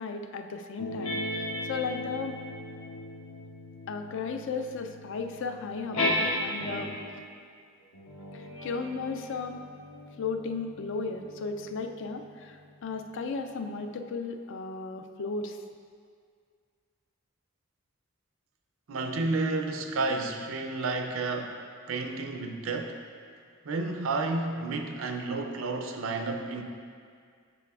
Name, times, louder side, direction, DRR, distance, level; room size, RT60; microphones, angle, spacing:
voice 1, 0.0-2.4 3.9-7.0 8.3-9.6 10.2-15.6, left 4 dB, 65° left, 6 dB, 0.4 m, -35 dB
sound 1, 0.8-7.2 7.9-12.9, left 1 dB, 85° left, 1.0 m, -36 dB
voice 2, 18.9-21.6 21.9-23.0 23.6-26.6, right 3 dB, 70° right, 5 dB, 0.5 m, -31 dB
6.9 x 6.7 x 2.4 m, 2.1 s
head